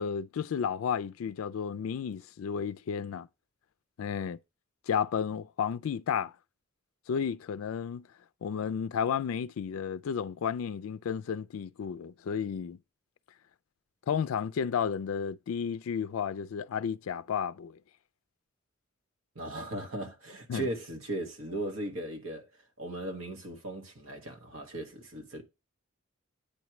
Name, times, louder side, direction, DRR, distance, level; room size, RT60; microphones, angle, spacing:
voice 1, 0.0-3.3 4.0-4.4 4.9-6.3 7.1-8.1 8.4-12.8 14.1-17.8 20.5-20.7, left 7 dB, 75° left, 0.4 m, -32 dB
voice 2, 19.3-22.5 22.8-25.4, right 1 dB, 70° right, 1.5 m, -37 dB
8.7 x 3.1 x 5.9 m
head